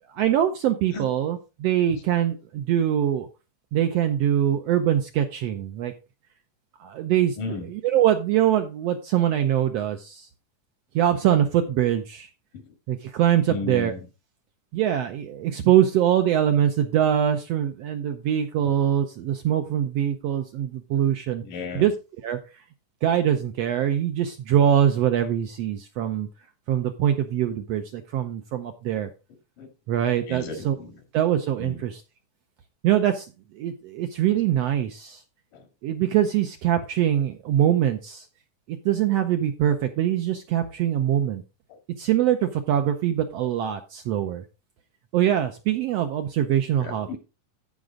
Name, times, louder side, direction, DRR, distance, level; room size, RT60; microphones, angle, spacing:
voice 1, 0.1-3.3 3.7-5.9 6.8-7.4 7.7-10.3 10.9-12.3 12.9-13.9 14.7-21.4 21.7-21.9 22.2-22.4 23.0-26.3 26.7-29.1 29.9-30.8 31.1-32.0 32.8-33.3 33.5-35.2 35.8-38.2 38.7-41.4 42.0-44.4 45.1-47.2, right 10 dB, 75° right, 6 dB, 1.5 m, -23 dB
voice 2, 7.4-7.7 12.5-12.7 13.5-14.0 18.6-18.7 20.9-21.2 21.4-21.9 29.6-29.7 30.3-31.0 31.6-31.8 35.5-35.7 46.8-47.2, left 3 dB, 85° left, 6 dB, 3.6 m, -35 dB
15.0 x 5.2 x 3.7 m, 0.30 s
omnidirectional pair, 3.6 m